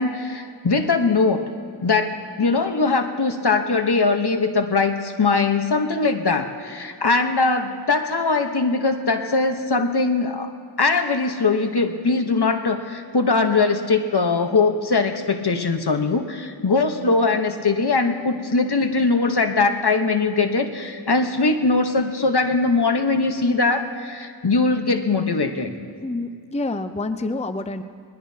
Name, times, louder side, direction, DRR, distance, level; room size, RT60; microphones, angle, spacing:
voice 1, 0.0-1.5 1.8-10.5 10.8-25.7, left 3 dB, 65° left, 6 dB, 1.0 m, -21 dB
voice 2, 26.0-27.8, left 2 dB, 15° left, 9 dB, 0.5 m, -27 dB
21.0 x 20.5 x 2.8 m, 2.2 s
wide cardioid pair, 45°, 42 cm